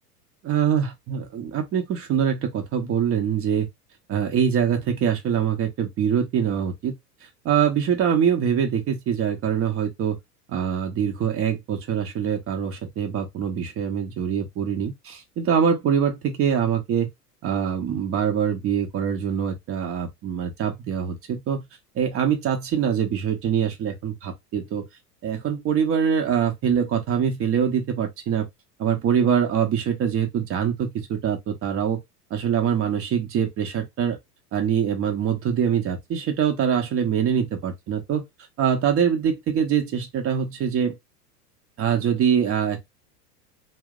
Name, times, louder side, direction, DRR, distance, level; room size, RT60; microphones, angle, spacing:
voice 1, 0.4-3.7 4.1-6.9 7.4-10.2 10.5-17.1 17.4-21.6 21.9-24.9 25.2-28.5 28.8-32.0 32.3-34.2 34.5-38.2 38.6-41.0 41.8-42.9, right 8 dB, 30° right, 0.8 m, -24 dB
2.7 x 2.1 x 3.6 m
figure-of-eight pair, 90°, 48 cm